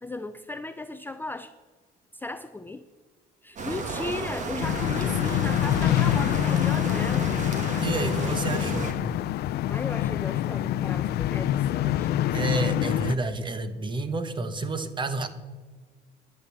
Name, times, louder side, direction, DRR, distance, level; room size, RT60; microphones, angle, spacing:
voice 1, 0.0-1.5 2.1-2.8 3.4-7.3 9.7-12.2, left 2 dB, 10° left, 10 dB, 0.5 m, -36 dB
sound 1, 3.6-8.9, right 3 dB, 45° right, 1.8 m, -33 dB
sound 2, 4.6-13.2, left 12 dB, 70° left, 0.5 m, -26 dB
voice 2, 7.8-8.9 12.3-15.3, right 2 dB, 30° right, 11 dB, 1.2 m, -29 dB
10.5 x 10.0 x 7.0 m, 1.4 s
cardioid pair, 110°, 17 cm